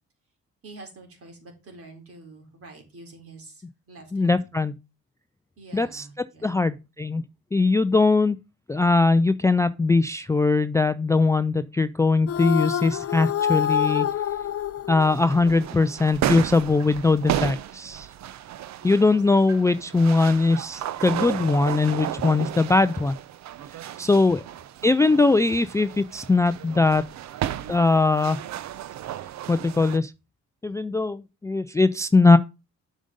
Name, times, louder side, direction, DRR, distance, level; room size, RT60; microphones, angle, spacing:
voice 1, 0.6-4.5 5.6-6.5 18.8-19.2, right 2 dB, 50° right, 3.8 m, -47 dB
voice 2, 4.1-4.8 5.7-6.1 6.4-7.2 7.5-8.4 8.7-14.1 14.9-18.1 18.8-23.1 24.0-24.4 24.8-27.1 27.7-28.4 29.5-30.1 30.6-32.4, left 3 dB, 10° left, 0.3 m, -21 dB
sound 1, 12.3-15.7, left 9 dB, 50° left, 0.6 m, -26 dB
sound 2, 15.0-30.0, right 11 dB, 65° right, 0.6 m, -33 dB
7.6 x 5.2 x 5.2 m
cardioid pair, 90°, 30 cm